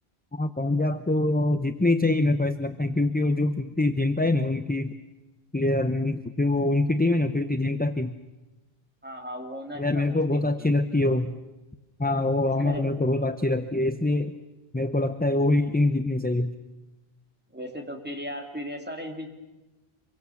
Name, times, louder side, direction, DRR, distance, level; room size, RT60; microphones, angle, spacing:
voice 1, 0.3-4.9 5.5-8.1 9.8-11.3 12.0-14.3 14.7-16.5, left 2 dB, 10° left, 10 dB, 0.6 m, -24 dB
voice 2, 9.0-10.7 12.6-12.9 17.5-19.3, equal, 10° right, 3 dB, 2.9 m, -37 dB
26.0 x 23.0 x 7.1 m, 1.1 s
omnidirectional pair, 1.0 m